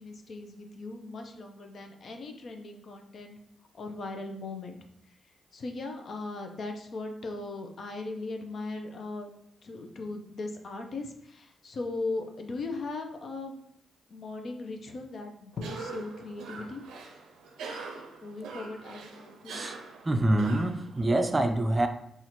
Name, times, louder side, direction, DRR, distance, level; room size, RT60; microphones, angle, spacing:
voice 1, 0.0-3.4 3.7-4.8 5.1-5.2 5.5-9.3 9.6-13.6 14.1-16.8 18.2-19.7, left 3 dB, 60° left, 4 dB, 0.5 m, -38 dB
Cough, 15.5-21.3, right 4 dB, 90° right, 0.5 m, -43 dB
voice 2, 20.0-21.9, right 1 dB, 25° right, 6 dB, 0.4 m, -26 dB
2.8 x 2.4 x 4.2 m, 0.72 s
cardioid pair, 65°, 0 cm